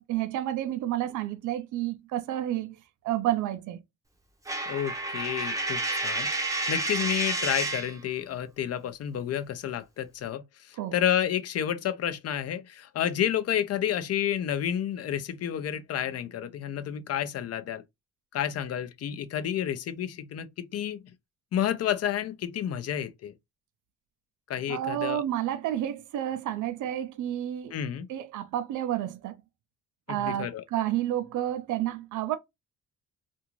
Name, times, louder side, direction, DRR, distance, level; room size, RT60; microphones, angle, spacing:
voice 1, 0.0-2.8 3.0-3.8 10.8-10.9 24.7-27.7 28.1-29.4 30.1-32.4, right 12 dB, 80° right, 0.5 m, -30 dB
Coin (dropping), 4.5-8.0, right 2 dB, 10° right, 0.6 m, -30 dB
voice 2, 4.7-17.8 18.3-21.1 21.5-23.3 24.5-25.2 27.7-28.1 30.1-30.6, left 10 dB, 55° left, 0.6 m, -30 dB
2.6 x 2.4 x 3.0 m
cardioid pair, 90°, 30 cm